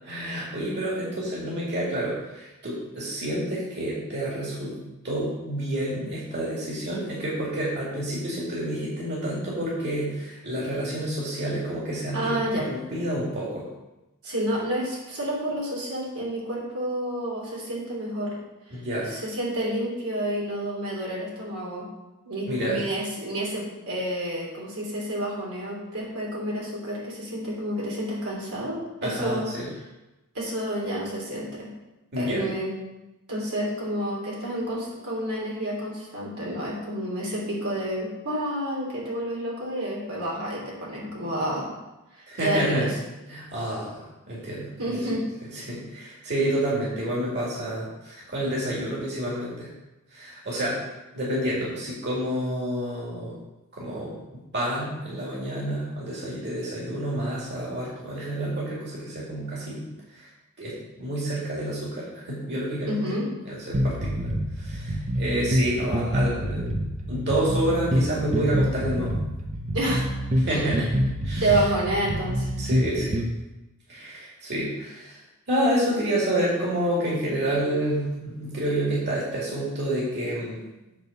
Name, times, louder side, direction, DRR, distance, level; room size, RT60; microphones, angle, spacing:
voice 1, 0.0-4.8 5.0-13.7 18.7-19.1 22.5-22.8 29.0-29.7 32.1-32.5 42.3-42.9 43.3-45.0 45.5-49.7 50.1-50.8 51.1-53.3 53.7-54.1 54.5-59.9 60.1-60.3 60.6-63.2 63.4-66.8 67.1-69.1 70.4-71.6 72.6-73.2 73.9-75.2 75.5-80.6, right 1 dB, 50° right, -6 dB, 2.4 m, -29 dB
voice 2, 12.1-12.7 14.2-18.4 19.1-21.9 22.2-29.5 30.3-31.7 32.2-32.7 33.3-41.7 42.2-42.9 44.8-45.2 62.9-63.3 69.7-70.1 70.5-70.7 71.4-72.5, right 1 dB, 90° right, -4 dB, 3.1 m, -29 dB
sound 1, 63.7-73.3, equal, 35° right, 0.8 m, -27 dB
8.4 x 4.0 x 6.7 m, 1.0 s
head